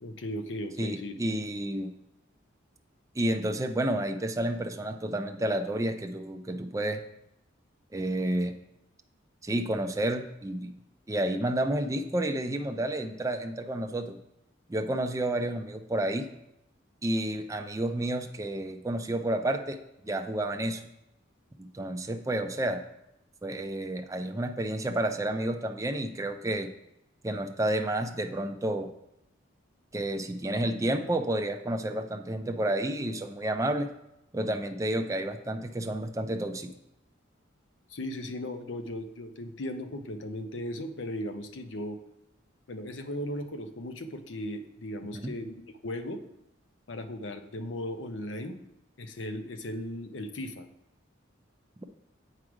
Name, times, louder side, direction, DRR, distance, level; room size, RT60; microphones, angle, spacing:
voice 1, 0.0-1.2 37.9-42.0 42.7-46.2 46.9-48.6 49.0-50.7, left 1 dB, 70° left, 8 dB, 0.7 m, -37 dB
voice 2, 0.8-1.9 3.2-7.0 7.9-8.5 9.4-10.8 11.1-14.2 14.7-16.3 17.0-19.8 20.0-20.8 21.6-22.8 23.4-26.7 27.2-28.9 29.9-33.9 34.3-36.7 45.1-45.3, right 1 dB, 15° right, 5 dB, 0.4 m, -30 dB
7.7 x 4.8 x 4.9 m, 0.85 s
head